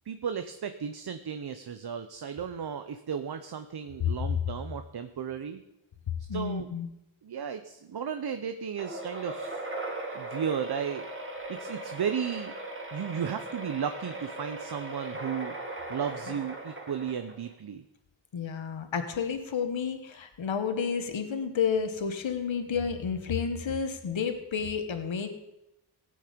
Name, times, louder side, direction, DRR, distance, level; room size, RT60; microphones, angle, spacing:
voice 1, 0.1-5.6 6.3-6.7 7.2-9.6 10.1-11.1 11.5-12.5 12.9-15.6 15.9-17.8, right 7 dB, 55° right, 9 dB, 0.7 m, -34 dB
voice 2, 6.3-6.9 18.3-25.3, left 6 dB, 70° left, 7 dB, 1.4 m, -30 dB
sound 1, 8.8-17.5, right 2 dB, 25° right, 1.9 m, -38 dB
17.0 x 8.7 x 5.2 m, 0.90 s
wide cardioid pair, 115°, 47 cm